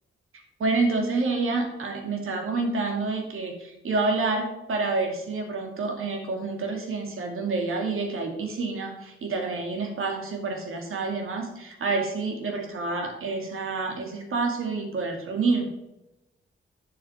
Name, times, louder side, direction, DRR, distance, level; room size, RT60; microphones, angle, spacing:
voice 1, 0.6-15.7, right 3 dB, 85° right, 2 dB, 2.5 m, -28 dB
9.2 x 7.4 x 5.0 m, 0.93 s
wide cardioid pair, 115°, 21 cm